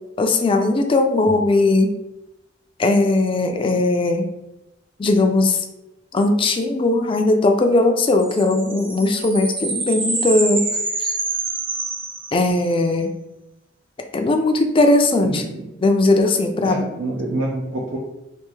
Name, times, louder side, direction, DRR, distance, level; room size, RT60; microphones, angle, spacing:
voice 1, 0.2-1.9 2.8-4.3 5.0-5.6 6.1-10.6 11.0-11.1 12.3-13.1 14.1-15.4 15.8-16.8, left 2 dB, 30° left, 5 dB, 0.4 m, -18 dB
sound 1, 8.2-12.8, right 3 dB, 30° right, 0.5 m, -26 dB
voice 2, 15.2-15.7 16.6-18.0, right 1 dB, 90° right, -3 dB, 0.6 m, -27 dB
3.3 x 2.6 x 3.1 m, 0.92 s
head